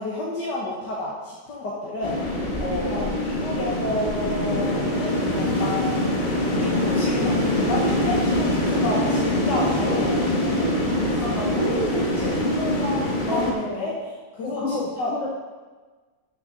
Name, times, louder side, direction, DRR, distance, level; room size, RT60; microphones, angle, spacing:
voice 1, 0.0-6.1 6.5-10.8 11.1-11.2 11.5-12.3 13.3-13.9 14.3-15.3, left 2 dB, 80° left, -4 dB, 2.0 m, -31 dB
sound 1, 2.0-13.5, left 1 dB, 30° left, 1.5 m, -24 dB
voice 2, 11.2-12.0 12.4-13.0 13.3-13.9 14.6-15.3, left 1 dB, 50° left, -5 dB, 3.7 m, -30 dB
12.0 x 6.7 x 4.0 m, 1.3 s
omnidirectional pair, 1.8 m